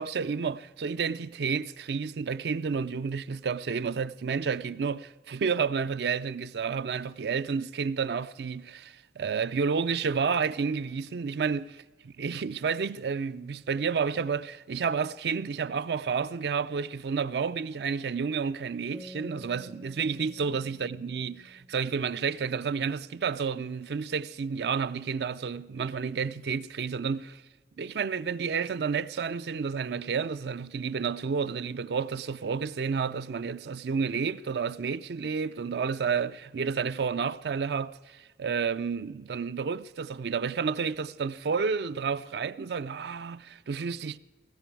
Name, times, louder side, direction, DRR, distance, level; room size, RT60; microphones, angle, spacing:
voice 1, 0.0-11.8 12.2-27.4 27.8-44.2, right 5 dB, 65° right, 0.4 m, -30 dB
sound 1, 18.9-22.4, equal, ahead, 0.4 m, -50 dB
17.5 x 16.5 x 4.6 m
head